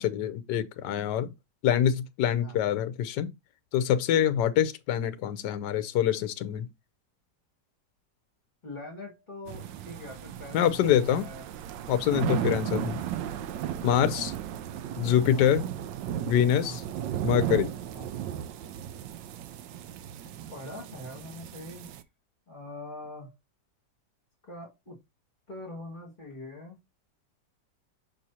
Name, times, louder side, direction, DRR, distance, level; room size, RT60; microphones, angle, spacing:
voice 1, 0.0-1.3 1.6-3.3 3.7-6.7 10.5-11.3 11.9-13.0 13.8-14.3 15.0-15.6 16.2-16.8 17.2-17.7, left 10 dB, 75° left, 1.2 m, -25 dB
voice 2, 8.6-11.5 12.3-12.9 14.0-14.3 15.3-15.6 16.6-16.8 17.9-18.1 20.5-21.9 22.5-23.3 24.5-25.0 25.5-26.8, left 1 dB, 25° left, 2.1 m, -43 dB
sound 1, 9.5-22.0, right 10 dB, 85° right, 1.3 m, -35 dB
6.1 x 5.5 x 2.8 m
omnidirectional pair, 2.0 m